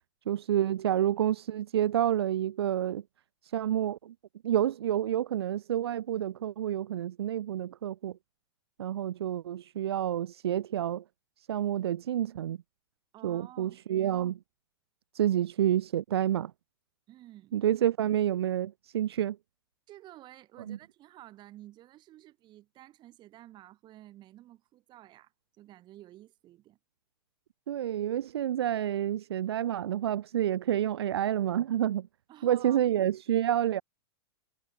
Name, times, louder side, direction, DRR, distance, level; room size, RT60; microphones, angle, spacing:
voice 1, 0.3-3.0 3.4-4.1 4.4-8.2 8.8-11.0 11.4-12.6 13.2-14.4 15.1-16.5 17.5-19.4 20.7-20.8 27.7-32.1 32.4-33.8, right 11 dB, 80° right, 0.9 m, -29 dB
voice 2, 13.1-13.8 17.1-17.6 19.9-25.3 25.6-26.8 32.3-32.8, right 15 dB, 35° right, 5.0 m, -52 dB
hypercardioid pair, 120°, 13 cm